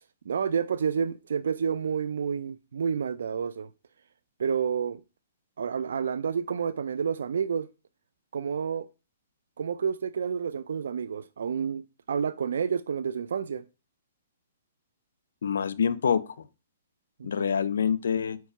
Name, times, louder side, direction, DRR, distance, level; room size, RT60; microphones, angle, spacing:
voice 1, 0.3-3.7 4.4-5.0 5.6-7.7 8.3-8.9 9.6-11.8 12.1-13.6 17.4-17.5, right 6 dB, 80° right, 0.4 m, -29 dB
voice 2, 15.4-16.5 17.2-18.4, left 7 dB, 80° left, 0.6 m, -26 dB
4.7 x 4.5 x 5.5 m
hypercardioid pair, 155°, 0 cm